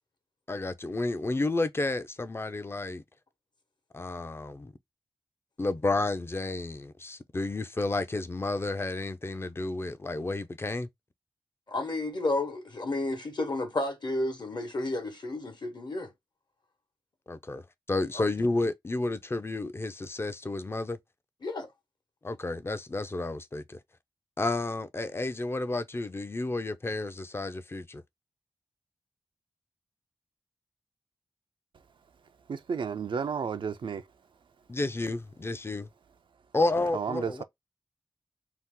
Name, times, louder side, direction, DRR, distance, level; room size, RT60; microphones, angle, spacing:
voice 1, 0.5-3.0 3.9-4.7 5.6-10.9 17.3-17.6 17.9-21.0 22.2-23.8 24.4-28.0 34.7-35.9 36.5-37.4, left 2 dB, 30° left, 0.5 m, -31 dB
voice 2, 11.7-16.1 18.1-18.3 21.4-21.7, left 2 dB, 60° left, 1.1 m, -31 dB
voice 3, 32.5-34.1 36.9-37.4, right 6 dB, 75° right, 0.4 m, -32 dB
2.8 x 2.1 x 3.6 m
cardioid pair, 40°, 9 cm